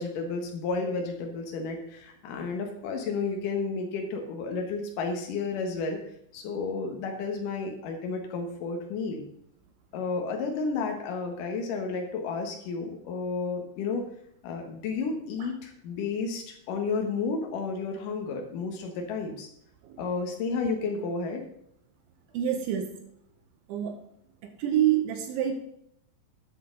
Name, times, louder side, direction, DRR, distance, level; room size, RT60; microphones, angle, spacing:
voice 1, 0.0-6.0 6.3-9.2 9.9-14.1 14.4-19.5 20.0-21.4, left 4 dB, 85° left, 3 dB, 1.8 m, -32 dB
voice 2, 22.3-23.0 23.7-24.1 24.4-25.5, right 10 dB, 75° right, 6 dB, 3.1 m, -27 dB
13.5 x 9.6 x 3.9 m, 0.71 s
omnidirectional pair, 6.0 m